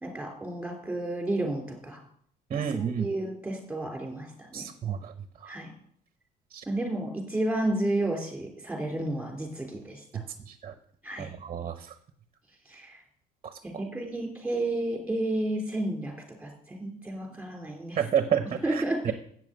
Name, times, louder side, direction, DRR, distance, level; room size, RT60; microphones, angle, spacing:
voice 1, 0.0-2.0 2.5-4.7 5.5-5.7 6.7-10.2 11.0-11.3 12.7-13.0 13.6-18.1 18.4-19.1, right 1 dB, 5° right, 2 dB, 3.3 m, -32 dB
voice 2, 2.5-3.1 4.5-5.1 10.6-10.7 11.2-11.7 18.0-18.4 19.1-19.2, right 8 dB, 35° right, 10 dB, 0.9 m, -28 dB
8.2 x 7.2 x 7.9 m, 0.64 s
cardioid pair, 110°, 17 cm